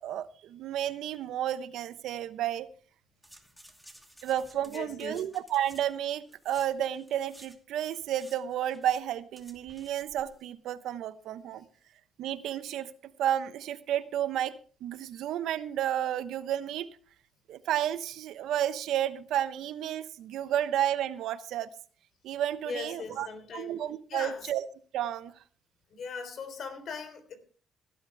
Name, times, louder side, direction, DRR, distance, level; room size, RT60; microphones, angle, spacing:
voice 1, 0.0-2.7 4.2-11.6 12.2-12.9 13.2-14.5 14.8-16.9 17.5-21.7 22.2-23.3 23.5-24.6 24.9-25.3, right 11 dB, 80° right, 0.9 m, -31 dB
sound 1, 3.2-7.6 7.8-10.4 10.7-10.8, right 1 dB, ahead, 2.6 m, -55 dB
voice 2, 4.6-5.3 22.6-23.7 24.1-24.5 25.9-27.4, left 5 dB, 65° left, 3.7 m, -40 dB
16.5 x 12.0 x 3.4 m
cardioid pair, 90°, 0 cm